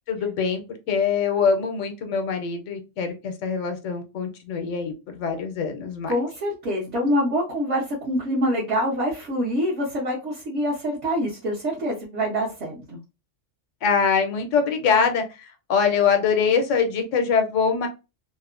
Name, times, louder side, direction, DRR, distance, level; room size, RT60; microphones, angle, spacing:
voice 1, 0.1-0.6 0.9-6.1 13.8-17.9, left 6 dB, 80° left, 5 dB, 1.0 m, -23 dB
voice 2, 6.1-13.0, equal, 65° right, -6 dB, 1.1 m, -25 dB
2.9 x 2.1 x 2.4 m, 0.28 s
omnidirectional pair, 1.3 m